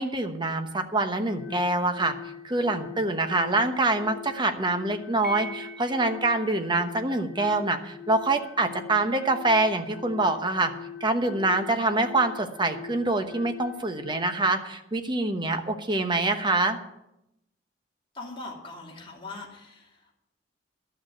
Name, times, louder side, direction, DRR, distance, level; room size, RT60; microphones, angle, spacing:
voice 1, 0.0-2.1 2.4-10.7 11.0-16.8, right 2 dB, 25° right, 6 dB, 1.0 m, -25 dB
sound 1, 1.3-14.1, left 8 dB, 70° left, 2.4 m, -43 dB
Piano, 5.2-6.4, right 1 dB, 5° right, 1.5 m, -39 dB
voice 2, 18.1-20.1, left 3 dB, 25° left, -2 dB, 2.9 m, -41 dB
12.0 x 6.5 x 9.2 m, 0.85 s
head